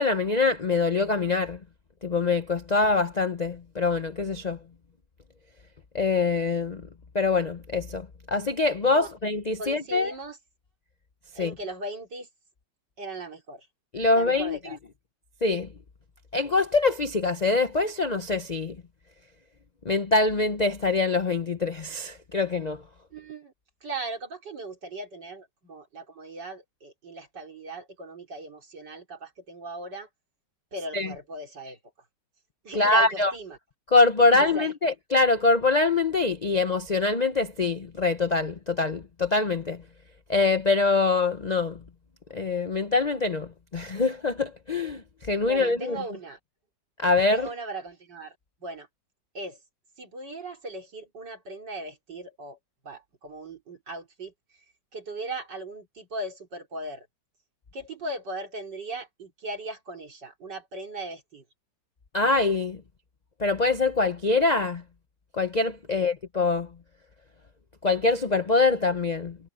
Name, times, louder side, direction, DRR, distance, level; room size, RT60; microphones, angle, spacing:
voice 1, 0.0-1.6 2.0-4.6 5.9-6.9 7.1-10.1 11.4-11.5 13.9-14.6 15.4-15.7 16.3-18.8 19.8-22.8 30.9-31.1 32.7-33.3 33.9-39.8 40.3-41.8 42.3-46.0 47.0-47.5 62.1-62.8 63.4-64.8 65.3-66.7 67.8-69.4, left 3 dB, 80° left, 0.3 m, -24 dB
voice 2, 9.6-10.4 11.3-12.3 13.0-13.7 14.1-14.8 23.1-23.5 23.8-30.1 30.7-31.8 32.6-33.6 34.2-34.7 45.4-46.4 47.3-48.9 49.3-49.6 50.0-52.6 52.8-54.3 54.9-57.1 57.7-61.4 65.9-66.1, right 2 dB, 60° right, 4.3 m, -38 dB
omnidirectional pair, 2.1 m